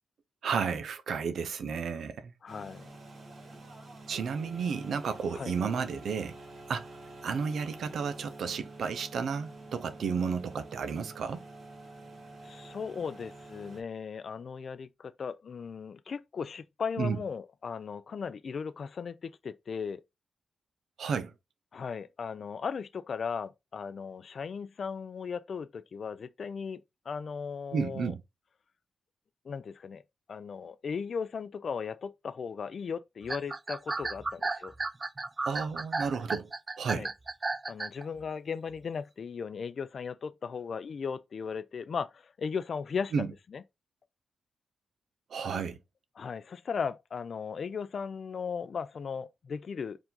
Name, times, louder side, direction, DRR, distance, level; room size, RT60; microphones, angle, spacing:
voice 1, 0.4-2.3 4.1-6.3 6.7-6.9 7.2-11.4 17.0-17.2 21.0-21.3 27.7-28.2 35.5-36.5 36.8-37.1 43.1-43.3 45.3-45.8, right 6 dB, 75° right, 0.6 m, -32 dB
voice 2, 2.4-2.9 5.3-5.5 12.4-20.0 21.7-28.1 29.4-30.0 30.3-34.7 36.8-37.1 37.7-43.6 46.2-50.0, left 6 dB, 55° left, 0.3 m, -37 dB
sound 1, 2.5-13.8, right 2 dB, 55° right, 1.7 m, -48 dB
sound 2, 33.2-38.0, right 3 dB, 30° right, 0.3 m, -33 dB
4.6 x 2.5 x 3.7 m
cardioid pair, 90°, 0 cm